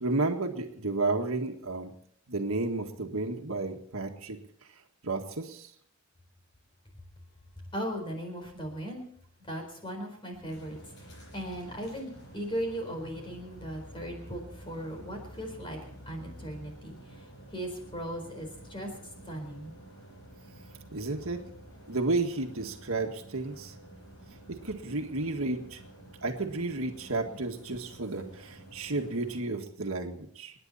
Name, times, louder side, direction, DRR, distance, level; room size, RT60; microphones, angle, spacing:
voice 1, 0.0-1.9 2.3-4.4 5.0-5.7 20.9-21.4 21.9-23.7 24.6-25.8 26.2-30.5, right 3 dB, 70° right, 4 dB, 1.8 m, -32 dB
voice 2, 7.7-9.0 9.4-10.8 11.3-15.8 16.1-16.9 17.5-18.9 19.3-19.7, equal, 25° left, 3 dB, 4.3 m, -37 dB
sound 1, 10.5-29.4, right 1 dB, 50° left, 7.0 m, -50 dB
29.5 x 10.0 x 4.2 m, 0.65 s
head